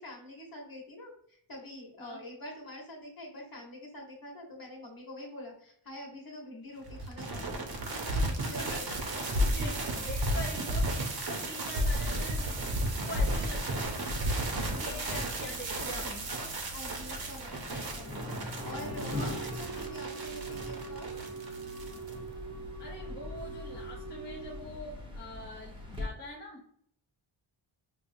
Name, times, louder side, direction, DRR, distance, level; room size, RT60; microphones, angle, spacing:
voice 1, 0.0-7.6 7.9-10.6 14.7-15.7 16.7-18.3 18.6-21.1, left 1 dB, 45° left, -2 dB, 1.2 m, -46 dB
sound 1, 6.9-22.1, right 1 dB, 50° right, 0.7 m, -33 dB
voice 2, 8.6-9.0 9.5-12.5 12.8-13.9 14.8-16.3 19.1-19.4 22.8-26.6, left 1 dB, 20° left, -3 dB, 0.5 m, -44 dB
sound 2, 12.3-26.1, left 1 dB, 10° right, 0.8 m, -43 dB
Wind instrument woodwind instrument, 18.6-24.6, right 4 dB, 30° right, 0.3 m, -43 dB
4.9 x 2.1 x 2.6 m, 0.63 s
wide cardioid pair, 110°, 50 cm